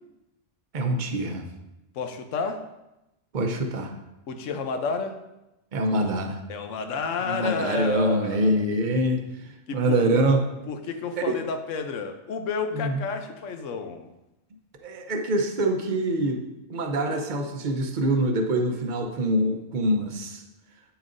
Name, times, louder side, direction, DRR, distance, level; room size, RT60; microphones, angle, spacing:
voice 1, 0.7-1.5 3.3-3.9 5.7-6.4 7.2-9.2 9.7-10.5 11.2-11.3 12.7-13.0 14.8-16.4 16.7-20.4, right 1 dB, 45° right, 4 dB, 0.8 m, -25 dB
voice 2, 2.0-2.6 4.3-5.2 6.5-8.5 9.7-10.0 10.7-14.1, left 5 dB, 80° left, 7 dB, 1.1 m, -31 dB
8.9 x 7.1 x 2.6 m, 0.94 s
omnidirectional pair, 1.3 m